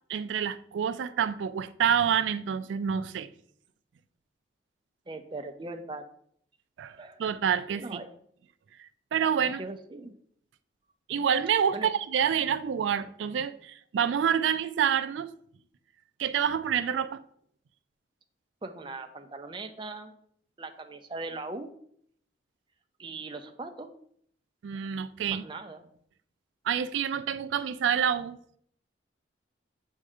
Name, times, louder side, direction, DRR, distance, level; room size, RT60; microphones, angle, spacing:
voice 1, 0.1-3.3 6.8-8.0 9.1-9.6 11.1-15.3 16.2-17.2 24.6-25.4 26.6-28.4, right 8 dB, 85° right, 0.3 m, -27 dB
voice 2, 5.1-6.0 7.0-7.2 7.7-8.1 9.6-10.1 11.7-11.9 18.6-20.1 20.6-21.7 23.0-23.9 25.3-25.9, right 3 dB, 25° right, 0.5 m, -40 dB
7.5 x 2.7 x 4.8 m
head